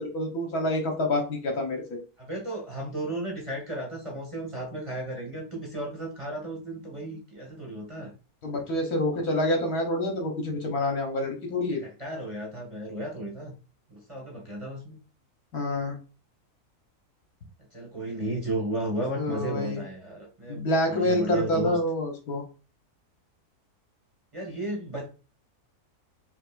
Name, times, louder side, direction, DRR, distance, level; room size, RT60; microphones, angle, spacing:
voice 1, 0.0-1.8 8.4-11.8 15.5-16.0 19.2-19.8 20.5-22.4, left 1 dB, 70° left, 2 dB, 1.8 m, -27 dB
voice 2, 2.2-8.1 11.7-13.5 13.9-15.0 17.7-21.8 24.3-25.1, right 1 dB, 20° right, -2 dB, 1.4 m, -34 dB
5.8 x 2.8 x 2.5 m, 0.34 s
omnidirectional pair, 1.6 m